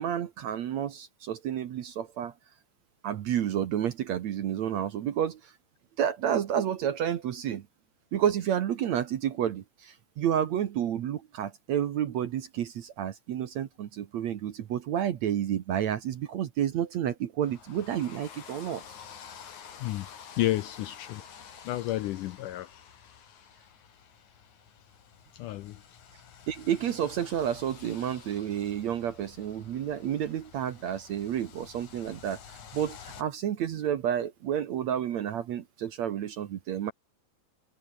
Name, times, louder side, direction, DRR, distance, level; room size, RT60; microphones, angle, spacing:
voice 1, 0.0-2.3 3.0-5.5 6.0-7.6 8.1-18.8 26.5-36.9, right 10 dB, 60° right, 2.0 m, -30 dB
sound 1, 17.4-33.2, left 7 dB, 55° left, 3.8 m, -50 dB
voice 2, 20.4-21.2 21.6-22.8 25.3-25.8, left 15 dB, 75° left, 2.0 m, -31 dB
omnidirectional pair, 4.3 m